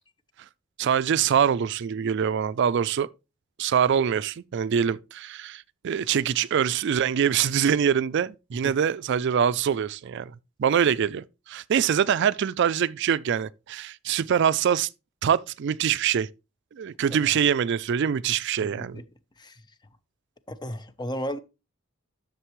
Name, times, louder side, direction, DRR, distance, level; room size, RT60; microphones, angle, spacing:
voice 1, 0.8-3.1 3.6-14.9 15.2-16.3 16.7-19.0, right 8 dB, 60° right, 0.4 m, -24 dB
voice 2, 20.5-21.4, equal, 20° left, 0.7 m, -34 dB
11.0 x 6.6 x 3.1 m
head